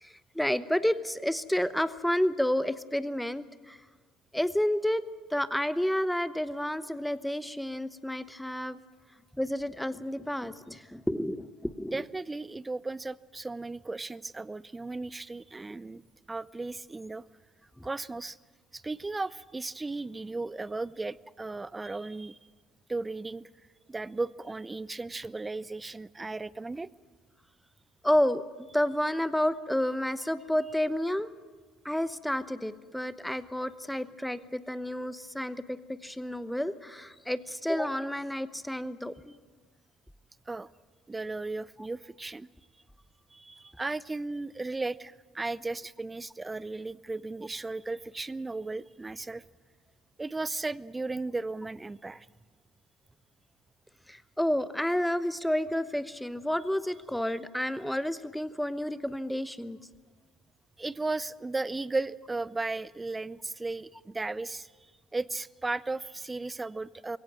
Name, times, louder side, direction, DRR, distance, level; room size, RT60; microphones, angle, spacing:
voice 1, 0.0-3.8 4.3-5.0 5.3-8.8 9.4-12.0 17.8-17.9 28.0-31.3 31.8-39.3 54.1-59.8, left 1 dB, 5° left, 14 dB, 1.0 m, -30 dB
voice 2, 11.9-17.2 17.8-18.4 18.7-22.4 22.9-23.5 23.9-26.9 40.5-40.7 41.1-42.5 43.3-49.4 50.2-52.3 60.8-64.7 65.1-67.2, right 3 dB, 20° right, 21 dB, 0.6 m, -35 dB
22.5 x 17.5 x 7.6 m, 1.4 s
hypercardioid pair, 60°, 0 cm